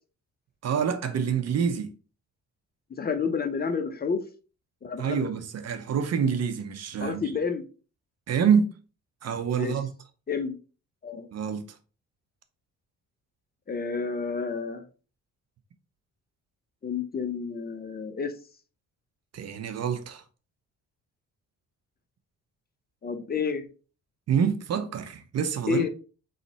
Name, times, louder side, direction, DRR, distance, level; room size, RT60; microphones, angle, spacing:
voice 1, 0.6-1.9 5.0-7.2 8.3-8.7 9.2-9.9 11.3-11.7 19.3-20.2 24.3-25.9, right 7 dB, 55° right, 0.8 m, -26 dB
voice 2, 2.9-4.2 4.8-5.3 7.0-7.6 9.6-9.7 10.3-10.5 11.0-11.3 13.7-14.8 16.8-18.4 23.0-23.7 25.7-25.9, left 5 dB, 30° left, 0.7 m, -30 dB
3.9 x 3.2 x 4.1 m
cardioid pair, 90°, 30 cm